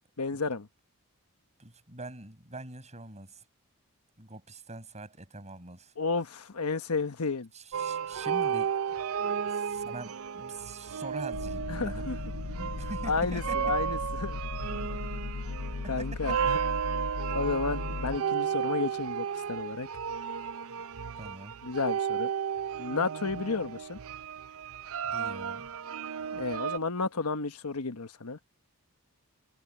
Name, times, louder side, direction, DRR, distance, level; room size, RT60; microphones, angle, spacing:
voice 1, 0.2-0.7 6.0-7.5 11.7-12.2 13.1-14.4 15.9-16.6 17.1-19.9 21.6-22.3 22.8-24.0 26.3-28.4, left 4 dB, 85° left, 1.2 m, -32 dB
voice 2, 1.6-3.4 4.2-5.9 7.5-8.8 9.2-12.1 12.5-13.7 15.8-16.4 20.7-20.8 21.1-21.6 25.0-25.7, right 2 dB, 30° right, 6.0 m, -44 dB
sound 1, 7.7-26.8, right 7 dB, 65° right, 0.5 m, -33 dB
sound 2, 11.3-18.2, left 4 dB, 60° left, 0.5 m, -37 dB
head